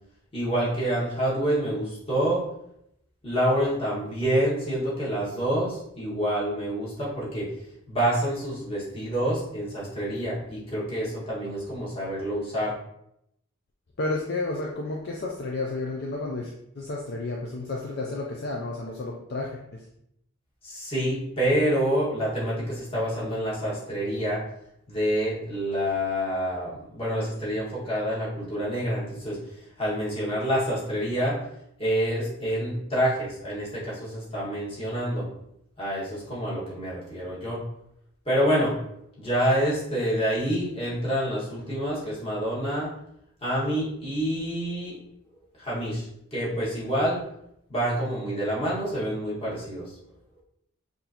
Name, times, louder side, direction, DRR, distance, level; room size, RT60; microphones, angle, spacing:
voice 1, 0.3-2.5 3.2-7.5 7.9-12.7 20.6-24.4 24.9-29.4 29.8-31.4 31.8-35.3 35.8-37.6 38.3-38.8 39.2-42.9 43.4-45.0 45.6-47.2 47.7-50.0, equal, 25° left, -7 dB, 1.7 m, -27 dB
voice 2, 14.0-19.8, left 2 dB, 50° left, -1 dB, 0.5 m, -31 dB
5.9 x 2.7 x 2.9 m, 0.76 s
head